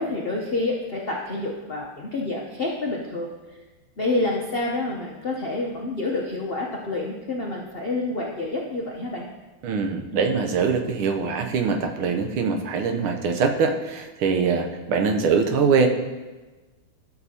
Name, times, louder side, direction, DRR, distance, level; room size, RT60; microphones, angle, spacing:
voice 1, 0.0-3.3 4.0-9.2, left 2 dB, 85° left, -2 dB, 0.5 m, -28 dB
voice 2, 9.6-15.9, right 5 dB, 80° right, 5 dB, 1.7 m, -23 dB
12.5 x 7.0 x 2.8 m, 1.2 s
omnidirectional pair, 2.3 m